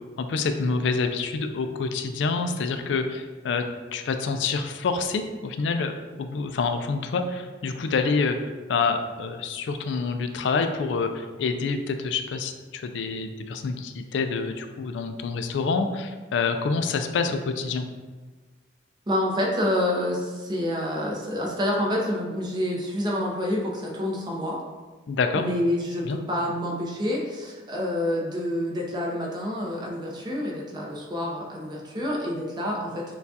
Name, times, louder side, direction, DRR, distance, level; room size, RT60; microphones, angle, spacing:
voice 1, 0.2-3.6 3.9-8.4 8.7-17.8 25.1-25.4 26.0-26.2, left 4 dB, 80° left, 7 dB, 0.3 m, -27 dB
voice 2, 19.1-24.6 25.3-33.0, left 1 dB, 25° right, -2 dB, 0.7 m, -28 dB
6.6 x 2.3 x 2.7 m, 1.3 s
head